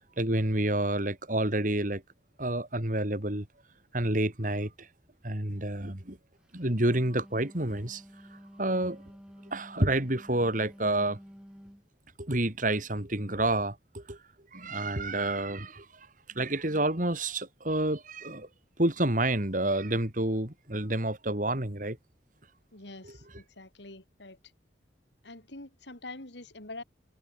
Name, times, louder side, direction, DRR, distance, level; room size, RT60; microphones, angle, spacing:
voice 1, 0.2-2.0 2.4-3.5 3.9-4.9 5.2-6.2 6.5-8.0 8.6-9.0 9.5-11.2 12.2-14.2 14.5-16.1 16.3-18.5 18.8-22.0 23.0-23.1, right 1 dB, 45° right, 2.9 m, -29 dB
Wind instrument woodwind instrument, 6.6-11.9, equal, 5° right, 3.3 m, -51 dB
voice 2, 22.7-24.4 25.2-26.8, left 2 dB, 70° left, 3.4 m, -45 dB
head